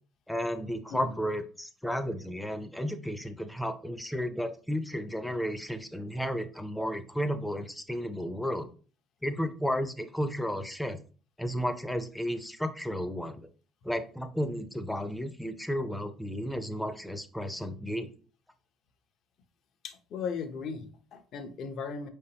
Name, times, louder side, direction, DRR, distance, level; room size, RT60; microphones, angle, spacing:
voice 1, 0.3-8.7 9.2-11.0 11.4-13.5 13.8-18.1, equal, 5° left, 9 dB, 0.5 m, -33 dB
voice 2, 19.8-22.1, left 5 dB, 60° left, 8 dB, 0.7 m, -37 dB
4.6 x 3.5 x 2.8 m, 0.40 s
cardioid pair, 110°, 0 cm